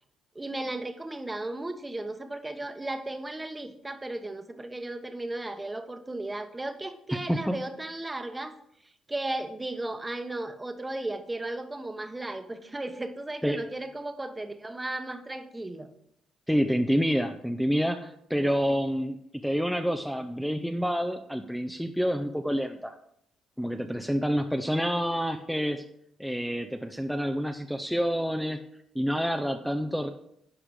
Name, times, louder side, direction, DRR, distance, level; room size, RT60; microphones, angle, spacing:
voice 1, 0.3-8.5 9.1-15.9, right 2 dB, 15° right, 8 dB, 1.0 m, -35 dB
voice 2, 7.3-7.6 13.4-13.6 16.5-23.0 23.6-25.8 26.2-28.6 28.9-30.1, equal, ahead, 5 dB, 0.6 m, -28 dB
11.5 x 4.9 x 4.8 m, 0.73 s
cardioid pair, 80°, 0 cm